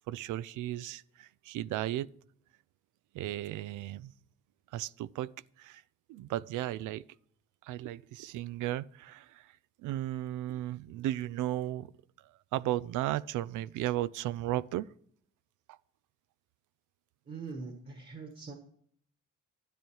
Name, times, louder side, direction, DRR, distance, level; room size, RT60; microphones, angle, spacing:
voice 1, 0.1-2.1 3.1-4.1 4.7-5.3 5.6-5.8 6.1-7.1 7.6-9.5 9.8-11.9 12.2-14.9 15.7-15.8, right 14 dB, 85° right, 0.5 m, -35 dB
voice 2, 17.3-18.5, right 4 dB, 35° right, 1.6 m, -42 dB
12.5 x 8.9 x 4.6 m
cardioid pair, 90°, 30 cm